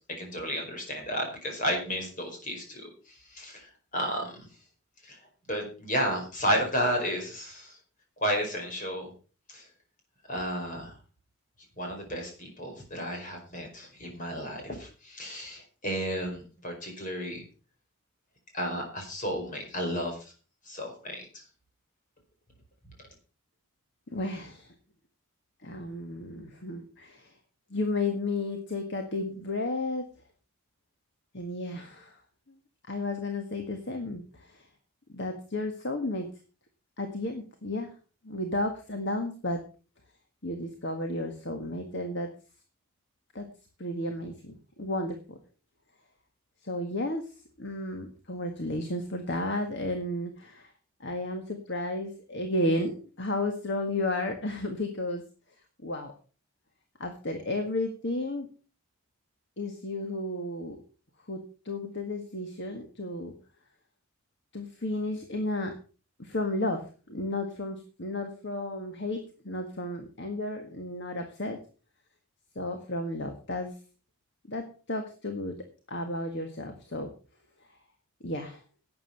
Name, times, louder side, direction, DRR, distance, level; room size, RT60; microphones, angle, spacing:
voice 1, 0.2-4.4 5.0-5.2 5.5-7.8 8.2-9.1 9.5-9.7 10.3-10.9 11.8-17.4 18.5-20.3 20.6-21.4, equal, 35° left, 3 dB, 4.9 m, -32 dB
voice 2, 24.1-24.7 25.6-27.3 27.7-30.1 31.3-32.2 32.5-32.6 32.9-34.7 35.1-36.3 37.0-37.9 38.2-39.6 40.4-42.3 43.3-43.5 43.8-45.4 46.6-47.2 47.6-50.7 51.0-55.3 55.8-56.1 57.0-58.5 59.6-60.8 61.3-63.3 64.5-65.7 66.2-71.6 72.5-73.7 74.5-77.1 78.2-78.6, left 1 dB, 50° left, 5 dB, 1.7 m, -33 dB
12.0 x 8.8 x 5.8 m, 0.37 s
head